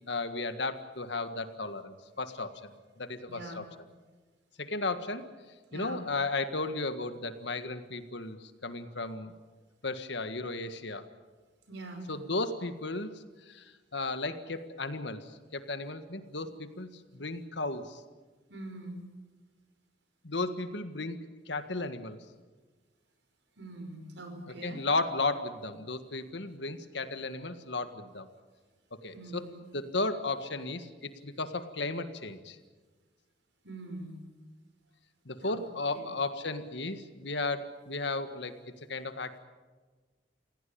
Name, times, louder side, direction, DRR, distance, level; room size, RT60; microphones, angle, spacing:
voice 1, 0.1-2.7 3.0-3.6 4.6-5.3 5.7-9.3 9.8-11.0 12.1-18.0 20.2-22.2 24.6-28.3 29.0-29.4 29.7-32.6 35.3-38.5 38.9-39.4, left 3 dB, 70° left, 10 dB, 1.7 m, -34 dB
voice 2, 3.3-3.7 5.7-6.0 11.7-12.1 18.5-19.1 23.6-24.8 29.1-29.6 33.6-34.2 35.4-35.6 35.9-36.1, right 2 dB, 75° right, 5 dB, 5.4 m, -43 dB
27.0 x 17.0 x 8.7 m, 1.3 s
head